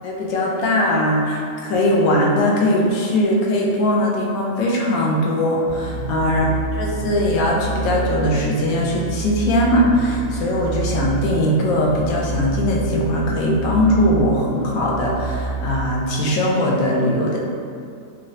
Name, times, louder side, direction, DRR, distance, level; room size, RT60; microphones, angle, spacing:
voice 1, 0.0-6.5 6.8-17.4, left 1 dB, 80° left, -2 dB, 1.0 m, -20 dB
sound 1, 5.6-16.4, right 4 dB, 60° right, 0.9 m, -28 dB
3.1 x 2.3 x 2.6 m, 2.4 s
omnidirectional pair, 1.5 m